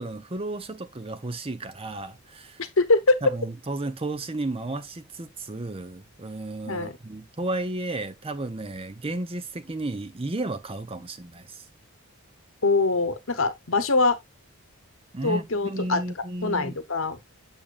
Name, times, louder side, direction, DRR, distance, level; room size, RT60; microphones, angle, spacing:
voice 1, 0.0-2.6 3.2-11.6 15.1-16.8, right 2 dB, 25° right, 0.6 m, -33 dB
voice 2, 2.8-3.2 6.7-6.9 12.6-14.2 15.2-16.0 16.4-17.2, left 3 dB, 65° left, 1.0 m, -23 dB
7.3 x 6.9 x 2.5 m
head